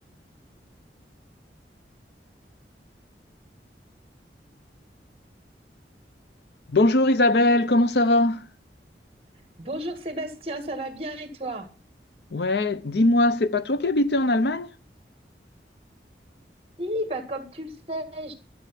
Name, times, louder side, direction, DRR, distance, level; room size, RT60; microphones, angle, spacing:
voice 1, 6.7-8.4 12.3-14.7, left 2 dB, 75° left, 0.7 m, -21 dB
voice 2, 9.6-11.7 16.8-18.3, right 1 dB, 35° right, 1.9 m, -32 dB
12.5 x 8.0 x 5.8 m
head